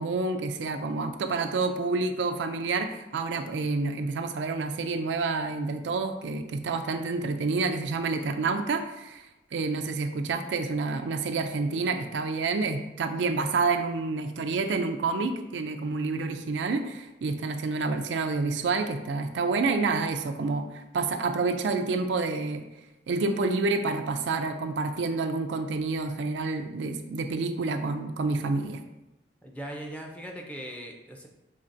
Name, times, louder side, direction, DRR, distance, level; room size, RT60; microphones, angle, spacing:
voice 1, 0.0-9.2 9.5-22.6 23.1-28.8, right 3 dB, 85° right, 7 dB, 0.4 m, -28 dB
voice 2, 29.4-31.3, equal, 10° left, 1 dB, 0.5 m, -40 dB
5.4 x 3.2 x 2.6 m, 0.98 s
head